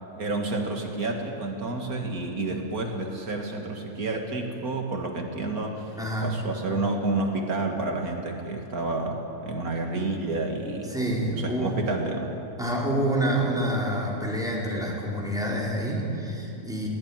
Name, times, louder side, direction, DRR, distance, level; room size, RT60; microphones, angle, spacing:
voice 1, 0.2-12.3, right 2 dB, 85° right, 2 dB, 2.4 m, -30 dB
voice 2, 6.0-6.3 10.9-11.8 12.6-16.9, right 1 dB, ahead, -4 dB, 4.7 m, -27 dB
22.5 x 18.5 x 9.0 m, 3.0 s
omnidirectional pair, 1.5 m